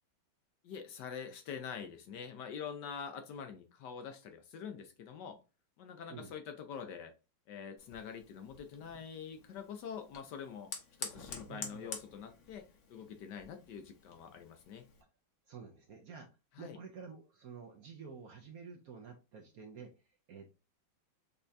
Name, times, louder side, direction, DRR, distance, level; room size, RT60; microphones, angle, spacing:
voice 1, 0.6-5.4 5.8-7.1 7.5-10.7 11.0-14.9 16.6-16.8, left 7 dB, 70° left, 1.1 m, -45 dB
Fire, 7.8-15.0, left 5 dB, 50° left, 1.0 m, -49 dB
voice 2, 11.5-11.9 15.5-16.3 16.6-19.9 20.3-20.5, right 5 dB, 65° right, 0.9 m, -50 dB
5.5 x 3.5 x 2.6 m
omnidirectional pair, 2.2 m